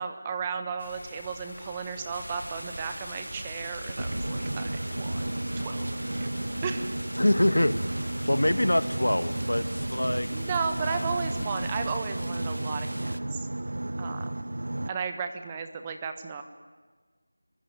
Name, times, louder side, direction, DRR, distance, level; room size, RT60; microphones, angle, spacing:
voice 1, 0.0-5.2 5.6-7.0 10.3-13.5 14.0-14.5 14.9-16.4, right 5 dB, 10° right, 7 dB, 1.2 m, -34 dB
sound 1, 0.8-12.0, left 1 dB, 45° left, 6.9 m, -45 dB
sound 2, 2.1-13.2, right 1 dB, 80° right, 1.3 m, -41 dB
Boat Water vehicle, 3.9-14.9, right 1 dB, 60° right, 0.7 m, -33 dB
voice 2, 7.1-10.3 10.9-11.0, left 1 dB, 90° left, 13 dB, 1.5 m, -25 dB
26.5 x 16.0 x 9.5 m, 1.4 s
figure-of-eight pair, 175°, 0 cm